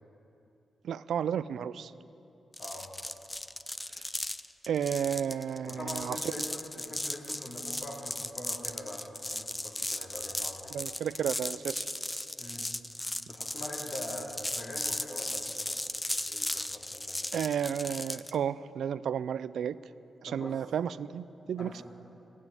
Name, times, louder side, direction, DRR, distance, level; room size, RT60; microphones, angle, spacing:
voice 1, 0.8-1.9 3.9-4.1 4.7-6.3 10.7-11.9 17.3-19.8 20.2-21.8, right 8 dB, 80° right, 16 dB, 0.3 m, -32 dB
sound 1, 2.5-18.4, left 1 dB, 15° left, 0.5 m, -36 dB
voice 2, 5.7-10.8 12.4-12.7 13.3-15.8 16.3-17.3 20.2-20.6 21.6-21.8, left 1 dB, 55° left, -1 dB, 3.1 m, -43 dB
16.5 x 9.0 x 9.6 m, 2.8 s
cardioid pair, 85°, 0 cm